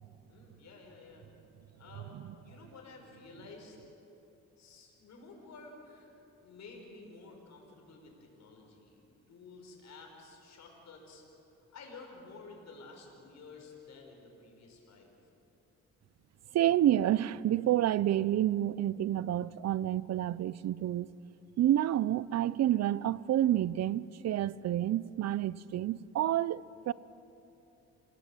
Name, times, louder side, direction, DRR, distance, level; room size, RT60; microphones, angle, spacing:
voice 1, 0.3-1.3 1.8-3.8 4.6-6.1 6.4-9.0 9.3-11.2 11.7-15.1, left 3 dB, 60° left, 5.9 m, -52 dB
voice 2, 16.5-21.1 21.6-26.9, right 12 dB, 60° right, 0.6 m, -29 dB
28.0 x 18.0 x 7.9 m
cardioid pair, 90°, 30 cm